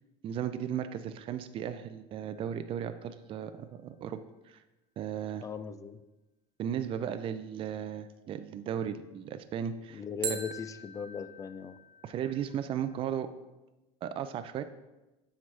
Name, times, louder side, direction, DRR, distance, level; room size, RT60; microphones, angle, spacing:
voice 1, 0.2-4.2 4.5-4.6 5.0-5.5 6.6-10.0 10.3-10.4 12.0-13.3 14.0-14.6, right 9 dB, 35° right, 11 dB, 0.4 m, -35 dB
sound 1, 2.2-3.2 10.2-13.2, right 6 dB, 85° right, 1.0 m, -43 dB
voice 2, 5.4-6.0 9.9-11.8, left 6 dB, 20° left, 12 dB, 0.4 m, -38 dB
7.5 x 5.7 x 3.3 m, 1.0 s
supercardioid pair, 115°, 15 cm